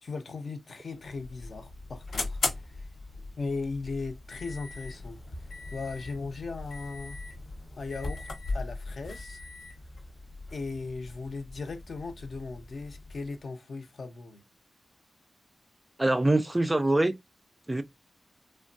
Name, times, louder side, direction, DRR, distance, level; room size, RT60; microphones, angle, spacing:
voice 1, 0.0-2.9 3.4-5.2 5.7-7.2 7.7-8.3 8.5-9.4 10.5-14.4, left 4 dB, 60° left, 0.6 m, -37 dB
sound 1, 0.9-13.4, left 3 dB, 90° left, 1.2 m, -39 dB
voice 2, 16.0-17.1 17.7-17.8, right 2 dB, 20° right, 0.3 m, -24 dB
3.3 x 2.2 x 2.5 m
wide cardioid pair, 95°, 0 cm